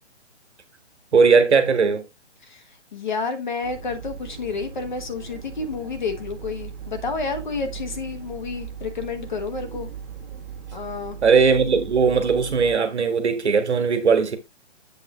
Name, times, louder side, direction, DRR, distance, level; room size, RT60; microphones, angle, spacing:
voice 1, 1.1-2.1 11.2-14.4, right 5 dB, 70° right, 1.6 m, -18 dB
voice 2, 2.9-9.9 10.7-11.2, left 4 dB, 40° left, 1.3 m, -30 dB
sound 1, 3.6-12.8, right 7 dB, 35° right, 1.5 m, -38 dB
8.1 x 3.0 x 4.8 m
hypercardioid pair, 175°, 35 cm